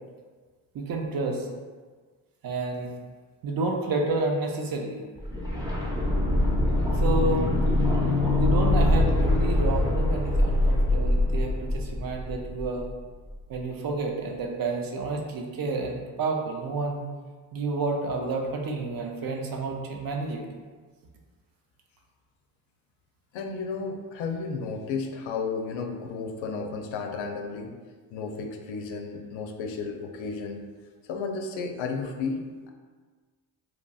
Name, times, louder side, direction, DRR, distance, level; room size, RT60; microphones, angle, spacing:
voice 1, 0.7-1.5 2.4-2.9 3.4-5.0 6.9-7.6 8.4-12.9 13.5-17.1 17.5-20.5, right 3 dB, 45° right, 2 dB, 0.5 m, -30 dB
sound 1, 5.2-13.0 13.3-13.4, left 1 dB, 10° right, 0.7 m, -23 dB
voice 2, 23.3-27.7 28.1-30.6 31.1-32.7, left 4 dB, 70° left, 3 dB, 0.5 m, -33 dB
2.9 x 2.5 x 2.3 m, 1.4 s
supercardioid pair, 55°, 48 cm